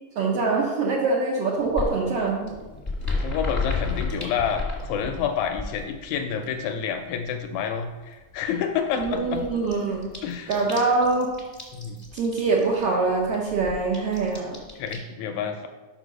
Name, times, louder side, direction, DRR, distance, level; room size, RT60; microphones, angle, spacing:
voice 1, 0.2-2.5 9.0-10.1 10.5-11.3 12.1-14.6, right 3 dB, 70° right, -2 dB, 1.5 m, -24 dB
sound 1, 1.6-6.8 7.1-7.8 8.0-8.1 8.4-8.5 8.7-15.0, left 3 dB, 10° left, 0.8 m, -33 dB
voice 2, 3.2-9.4 10.2-10.5 11.7-12.0 14.8-15.7, left 7 dB, 80° left, 6 dB, 1.7 m, -29 dB
5.3 x 4.6 x 6.2 m, 1.2 s
omnidirectional pair, 3.5 m